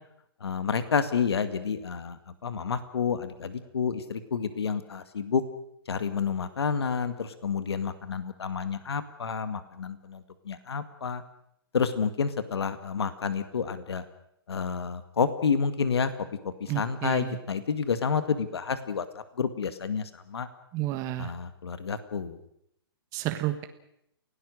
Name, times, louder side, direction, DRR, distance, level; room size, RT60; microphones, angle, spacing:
voice 1, 0.4-5.4 5.9-11.2 11.7-14.0 14.5-16.1 16.4-19.0 19.4-20.5 21.2-22.4, left 6 dB, 90° left, 11 dB, 2.0 m, -29 dB
voice 2, 16.7-17.4 20.7-21.3 23.1-23.6, right 14 dB, 25° right, 7 dB, 1.5 m, -31 dB
29.0 x 17.5 x 6.5 m, 0.76 s
hypercardioid pair, 155°, 13 cm